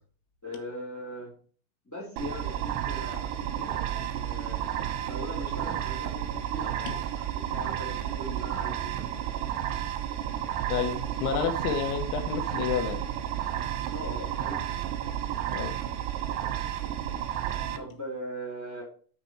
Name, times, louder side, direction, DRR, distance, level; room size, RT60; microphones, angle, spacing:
voice 1, 0.4-1.3 1.8-4.6 5.1-6.2 6.5-9.4 13.9-14.7 17.7-18.8, equal, 5° left, -3 dB, 1.3 m, -40 dB
sound 1, 2.2-17.8, right 11 dB, 75° right, 2.7 m, -32 dB
voice 2, 10.7-13.0 15.5-15.7, left 7 dB, 85° left, 6 dB, 3.6 m, -30 dB
7.0 x 6.0 x 4.4 m, 0.42 s
omnidirectional pair, 5.4 m